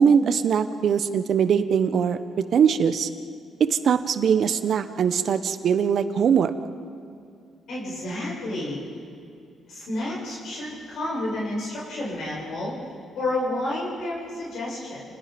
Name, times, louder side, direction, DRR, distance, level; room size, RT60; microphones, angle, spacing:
voice 1, 0.0-2.2 2.5-3.1 3.7-6.5, right 7 dB, 60° right, 11 dB, 1.1 m, -21 dB
voice 2, 7.7-8.8 9.7-12.8 13.1-15.0, left 1 dB, 70° left, -5 dB, 7.7 m, -30 dB
29.0 x 20.5 x 5.3 m, 2.4 s
cardioid pair, 90°, 0 cm